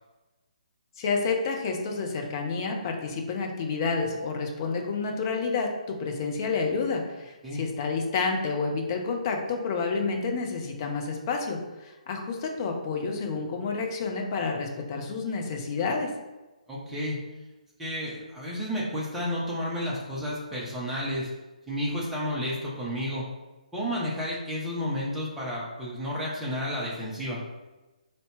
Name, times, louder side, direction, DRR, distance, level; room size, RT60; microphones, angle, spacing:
voice 1, 1.0-16.1, left 4 dB, 30° left, 2 dB, 0.6 m, -29 dB
voice 2, 16.7-17.2 17.8-21.3 21.7-23.3 23.7-27.4, equal, 5° right, -6 dB, 0.8 m, -31 dB
4.0 x 2.7 x 3.4 m, 1.1 s
figure-of-eight pair, 135°, 4 cm